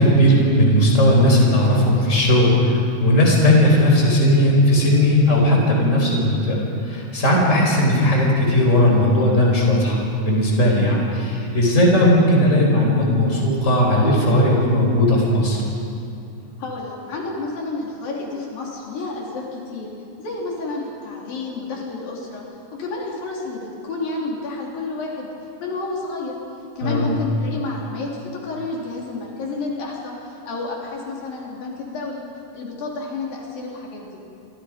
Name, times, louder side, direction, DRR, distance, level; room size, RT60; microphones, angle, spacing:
voice 1, 0.0-6.6 6.8-15.6 26.8-27.2, left 1 dB, 20° left, -1 dB, 5.0 m, -17 dB
voice 2, 16.6-19.9 20.2-22.4 22.7-25.3 25.6-26.4 26.8-32.2 32.5-34.2, left 3 dB, 85° left, -3 dB, 5.2 m, -30 dB
28.5 x 24.0 x 5.2 m, 2.7 s
omnidirectional pair, 3.9 m